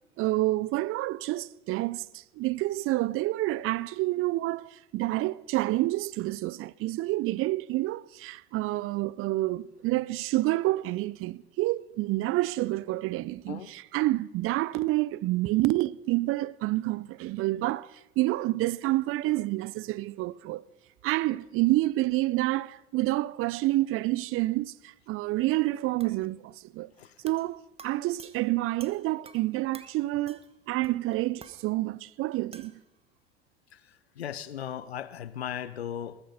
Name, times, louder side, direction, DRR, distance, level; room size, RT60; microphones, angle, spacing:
voice 1, 0.2-20.6 21.0-26.9 27.2-30.4 30.7-32.7, right 18 dB, 45° right, 0.5 m, -28 dB
sound 1, 26.0-26.3 27.3-27.5 27.8-29.5 29.7-30.0 30.3-30.6 30.8-31.6 32.5-32.8, right 4 dB, 20° right, 1.2 m, -51 dB
voice 2, 33.7-36.2, left 9 dB, 85° left, 0.6 m, -37 dB
20.0 x 9.7 x 5.3 m
figure-of-eight pair, 65°, 31 cm